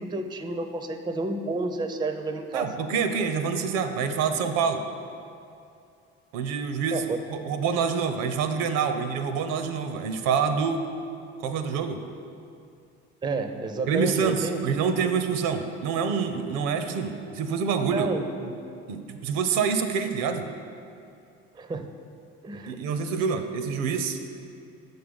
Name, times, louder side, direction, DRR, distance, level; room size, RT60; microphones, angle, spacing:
voice 1, 0.0-2.7 6.9-7.2 13.2-14.6 17.9-18.5 21.5-21.9 22.4-22.8, right 3 dB, 15° right, 7 dB, 0.4 m, -30 dB
voice 2, 2.5-4.8 6.3-7.0 7.3-10.8 11.4-12.0 13.9-18.1 18.9-20.5 22.7-24.2, right 6 dB, 70° right, 8 dB, 0.6 m, -26 dB
6.6 x 4.0 x 5.1 m, 2.5 s
hypercardioid pair, 55°, 35 cm